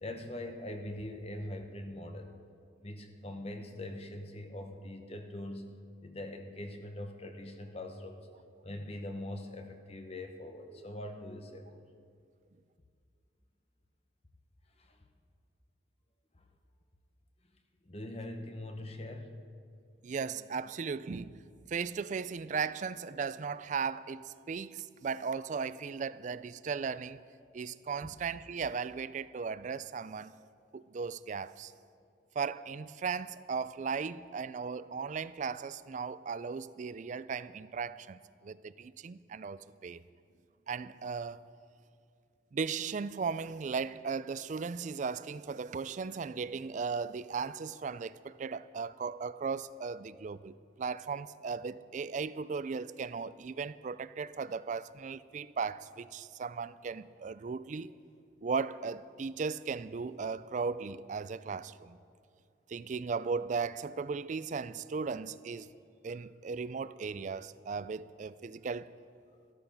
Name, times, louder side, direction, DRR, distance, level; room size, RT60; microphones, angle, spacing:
voice 1, 0.0-2.3 2.8-5.7 6.0-8.3 8.6-11.8 14.8-15.0 16.4-16.5 17.8-19.4 28.0-28.2, left 1 dB, 30° left, 0.9 m, -42 dB
voice 2, 20.0-21.4 21.7-27.2 27.5-30.3 30.7-31.7 32.4-40.0 40.7-41.4 42.5-57.9 58.4-62.0 62.7-65.7 66.0-68.9, right 5 dB, 40° right, 0.3 m, -37 dB
14.0 x 13.0 x 5.5 m
head